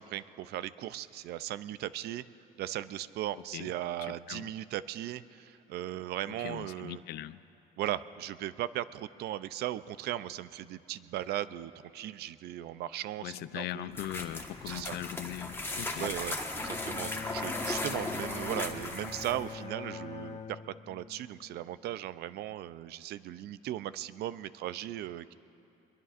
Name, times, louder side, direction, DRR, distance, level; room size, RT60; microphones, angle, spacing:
voice 1, 0.0-2.2 2.6-7.0 7.8-14.0 14.7-15.0 16.0-20.6 20.9-25.3, right 13 dB, 70° right, 15 dB, 0.5 m, -37 dB
voice 2, 4.0-4.5 6.4-7.4 13.2-16.1, left 14 dB, 75° left, 15 dB, 0.5 m, -40 dB
sound 1, 13.9-19.5, left 2 dB, 15° left, 1.3 m, -37 dB
Bowed string instrument, 16.5-22.0, left 6 dB, 45° left, 0.8 m, -44 dB
23.5 x 22.0 x 2.5 m, 2.7 s
cardioid pair, 110°, 17 cm